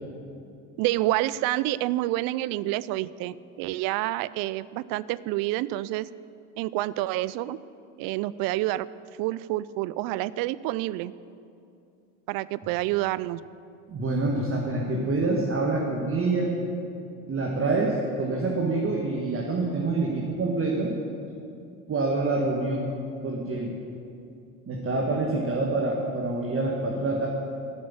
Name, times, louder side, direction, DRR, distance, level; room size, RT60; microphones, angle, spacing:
voice 1, 0.8-6.1 6.6-7.6 8.0-8.9 9.2-11.1 12.3-13.5, right 16 dB, 70° right, 18 dB, 0.5 m, -28 dB
voice 2, 13.9-16.6 17.3-20.9 21.9-22.9 23.2-23.7 24.7-27.3, right 3 dB, 35° right, -1 dB, 1.7 m, -26 dB
11.5 x 6.2 x 8.6 m, 2.6 s
supercardioid pair, 80°, 36 cm